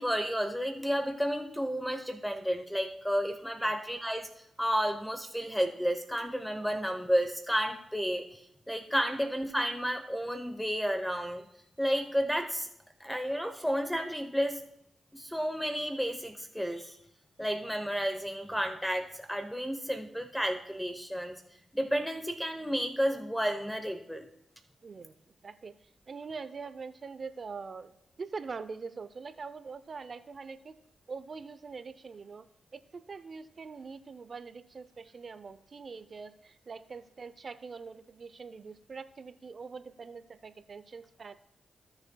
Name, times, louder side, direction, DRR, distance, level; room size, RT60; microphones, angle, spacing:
voice 1, 0.0-4.3 4.6-11.4 11.8-12.7 13.0-14.6 15.1-17.0 17.4-21.4 21.7-24.2, equal, ahead, 6 dB, 0.9 m, -31 dB
voice 2, 24.8-25.1 25.4-25.7 26.1-30.7 31.1-32.4 32.7-41.3, right 4 dB, 55° right, 13 dB, 0.6 m, -43 dB
16.0 x 6.9 x 2.3 m, 0.76 s
supercardioid pair, 45°, 0 cm